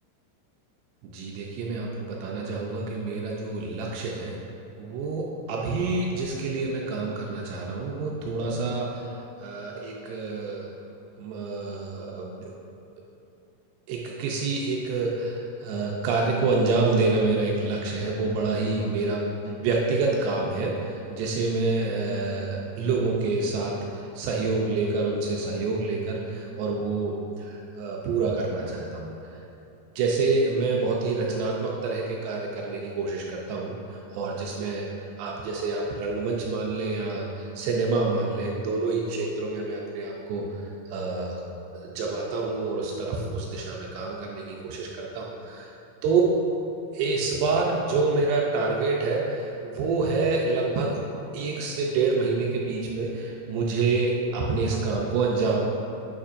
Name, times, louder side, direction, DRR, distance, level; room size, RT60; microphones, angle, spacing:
voice 1, 1.0-4.3 4.8-10.7 11.2-12.5 13.9-29.1 30.0-41.4 41.7-45.7 46.0-46.2 46.9-51.0 51.3-55.6, right 3 dB, 80° right, -2 dB, 2.5 m, -27 dB
8.7 x 7.1 x 2.5 m, 2.9 s
omnidirectional pair, 5.3 m